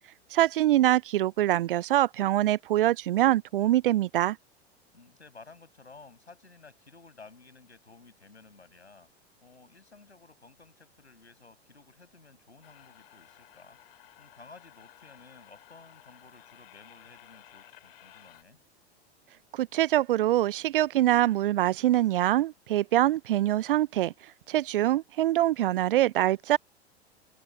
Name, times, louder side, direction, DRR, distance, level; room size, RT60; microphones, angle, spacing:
voice 1, 0.3-4.4 19.5-24.1 24.5-26.6, right 14 dB, 55° right, 0.5 m, -24 dB
voice 2, 4.9-9.1 9.4-18.6, left 4 dB, 80° left, 5.8 m, -54 dB
sound 1, 12.6-18.4, left 13 dB, 60° left, 2.7 m, -55 dB
open air
figure-of-eight pair, 95°, 33 cm